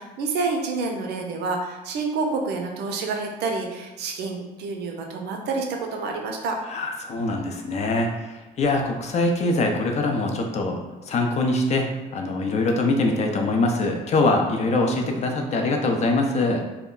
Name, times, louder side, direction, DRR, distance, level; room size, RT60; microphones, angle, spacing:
voice 1, 0.0-6.6, right 4 dB, 80° right, 2 dB, 0.5 m, -28 dB
voice 2, 6.7-16.6, left 2 dB, 40° left, 3 dB, 0.4 m, -23 dB
2.2 x 2.1 x 3.7 m, 1.1 s
cardioid pair, 110°, 17 cm